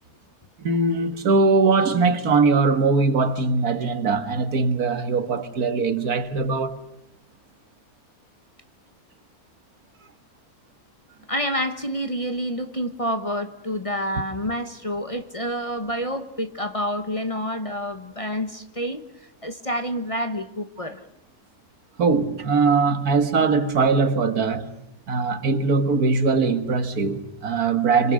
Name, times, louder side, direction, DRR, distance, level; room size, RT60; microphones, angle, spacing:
voice 1, 0.6-6.8 22.0-24.7 25.1-28.1, right 4 dB, 80° right, 2.0 m, -21 dB
voice 2, 11.3-21.0, equal, 25° left, 1.1 m, -28 dB
29.0 x 25.5 x 6.5 m
omnidirectional pair, 1.6 m